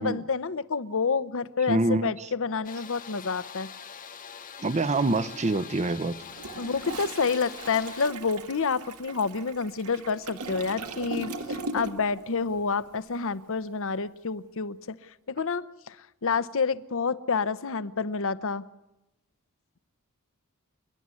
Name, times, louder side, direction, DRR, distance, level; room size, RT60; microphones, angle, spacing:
voice 1, 0.0-3.7 6.6-18.7, left 5 dB, 60° left, 14 dB, 0.8 m, -29 dB
voice 2, 1.7-2.3 4.6-6.2, right 2 dB, 30° right, 17 dB, 0.7 m, -26 dB
sound 1, 2.6-8.1, left 7 dB, 40° left, 1.0 m, -44 dB
Toilet flush, 6.2-12.2 12.5-12.7, right 2 dB, 80° right, 1.6 m, -38 dB
28.0 x 11.0 x 9.7 m, 0.96 s
head